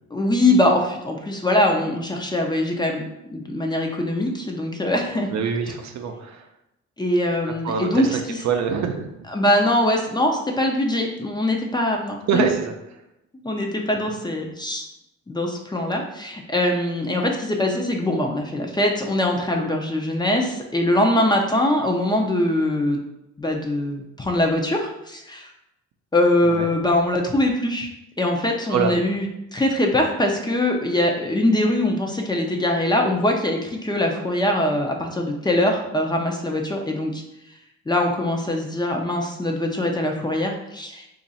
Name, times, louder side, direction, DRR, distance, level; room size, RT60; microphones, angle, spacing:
voice 1, 0.1-5.3 7.0-8.4 9.3-12.5 13.4-14.9 15.3-23.0 23.4-25.5 26.1-27.9 28.2-37.2 37.9-41.1, left 1 dB, 15° left, 1 dB, 0.5 m, -22 dB
voice 2, 5.3-6.4 7.6-8.2 8.4-9.1 12.3-12.7 26.4-26.7 28.7-29.1, right 6 dB, 65° right, 4 dB, 0.5 m, -24 dB
2.9 x 2.5 x 4.1 m, 0.87 s
cardioid pair, 90°, 30 cm